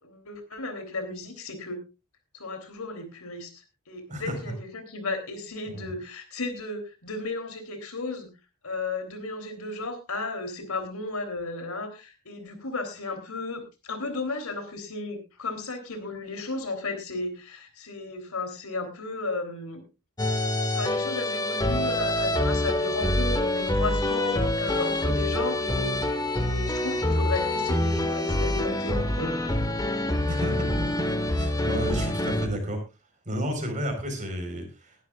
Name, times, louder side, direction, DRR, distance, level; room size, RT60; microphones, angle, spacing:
voice 1, 0.0-1.8 2.3-3.5 3.9-8.3 8.6-19.8 20.7-29.3, left 3 dB, 85° left, 7 dB, 3.5 m, -34 dB
voice 2, 4.1-4.5 5.7-5.9 30.3-30.9 31.3-32.8 33.3-35.0, equal, 35° right, 5 dB, 4.4 m, -31 dB
sound 1, 20.2-32.5, left 1 dB, 20° left, 1.5 m, -26 dB
20.5 x 11.5 x 2.5 m, 0.28 s
head